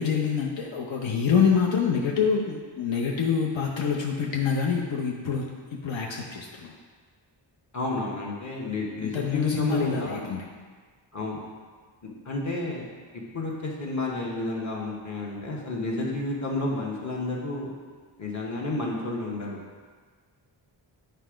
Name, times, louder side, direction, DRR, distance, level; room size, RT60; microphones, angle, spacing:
voice 1, 0.0-5.4 5.8-6.7 9.0-10.4, left 6 dB, 75° left, -1 dB, 0.8 m, -26 dB
voice 2, 7.7-10.3 11.1-11.4 12.2-12.8 13.3-17.7 18.2-19.6, left 2 dB, 40° left, -3 dB, 1.2 m, -31 dB
9.4 x 3.5 x 5.0 m, 1.5 s
wide cardioid pair, 165°, 46 cm